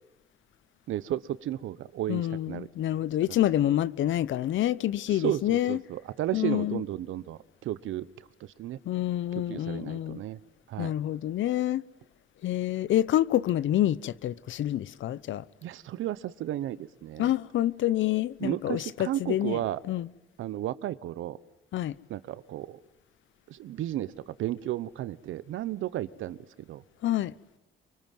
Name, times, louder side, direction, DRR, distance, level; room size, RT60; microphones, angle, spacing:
voice 1, 0.9-2.2 2.5-2.7 5.1-8.1 8.6-8.8 9.5-10.4 10.7-10.9 15.6-17.3 18.4-19.8 20.4-21.4 22.1-22.8 23.5-26.4 26.7-26.8, right 13 dB, 80° right, 1.1 m, -33 dB
voice 2, 2.1-5.8 6.3-6.8 8.9-10.2 10.8-11.8 12.4-15.4 17.2-19.6 19.9-20.1 21.7-21.9 27.0-27.3, left 13 dB, 75° left, 0.9 m, -27 dB
24.5 x 24.0 x 9.4 m
cardioid pair, 90°, 20 cm